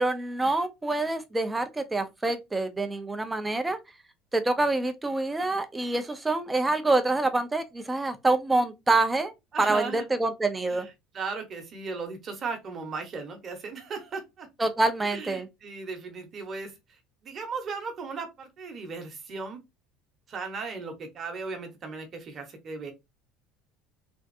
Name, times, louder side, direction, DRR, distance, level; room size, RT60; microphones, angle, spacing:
voice 1, 0.0-3.8 4.3-9.3 9.6-10.9 14.6-15.5, right 2 dB, 10° right, 0.4 m, -26 dB
voice 2, 9.5-10.1 10.7-14.5 15.0-19.6 20.3-22.9, right 4 dB, 30° right, 0.9 m, -37 dB
3.4 x 2.5 x 2.5 m
cardioid pair, 160°, 0 cm